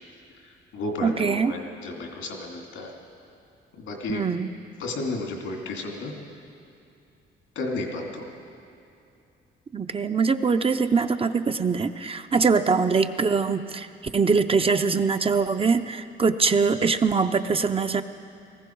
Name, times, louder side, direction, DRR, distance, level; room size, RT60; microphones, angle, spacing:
voice 1, 0.3-2.9 3.7-4.2 4.8-6.1 7.5-8.3 12.3-12.4, left 2 dB, 80° left, 1 dB, 2.7 m, -33 dB
voice 2, 1.0-1.5 4.1-4.5 9.7-13.9 14.1-18.0, right 5 dB, 30° right, 9 dB, 0.6 m, -23 dB
19.0 x 15.0 x 4.6 m, 2.6 s
cardioid pair, 90°, 20 cm